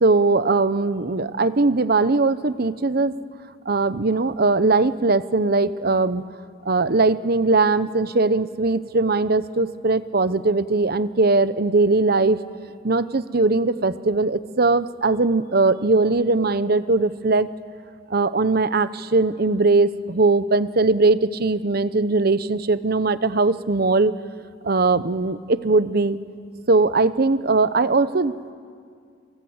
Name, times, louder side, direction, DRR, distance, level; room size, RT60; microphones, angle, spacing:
voice 1, 0.0-3.1 3.7-6.2 6.6-12.4 12.8-17.5 18.1-24.2 24.6-26.2 26.7-28.5, right 3 dB, 55° right, 14 dB, 0.9 m, -20 dB
29.5 x 24.5 x 8.1 m, 2.2 s
head